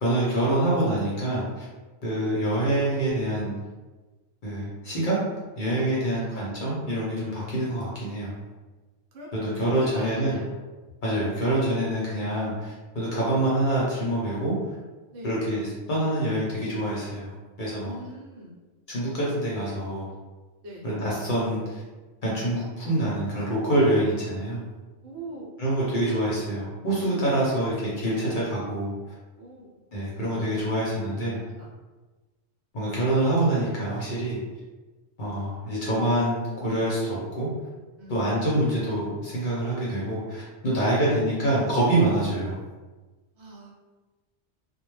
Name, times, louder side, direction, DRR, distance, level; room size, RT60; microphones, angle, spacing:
voice 1, 0.0-1.6 2.0-3.5 4.4-5.2 5.6-8.3 9.3-10.4 11.0-14.5 15.2-17.3 17.6-17.9 18.9-20.1 20.8-21.8 22.2-24.6 25.6-28.9 29.9-31.4 32.7-34.4 35.2-37.5 38.1-42.6, right 1 dB, 50° left, -6 dB, 0.7 m, -26 dB
voice 2, 6.1-6.6 9.1-9.3 9.8-10.5 15.1-15.4 17.8-18.6 20.6-20.8 25.0-25.5 28.3-28.4 29.4-29.8 31.3-31.7 38.0-38.2 40.7-41.0 43.4-43.7, right 1 dB, 70° right, -2 dB, 0.9 m, -42 dB
2.1 x 2.1 x 3.1 m, 1.2 s
omnidirectional pair, 1.3 m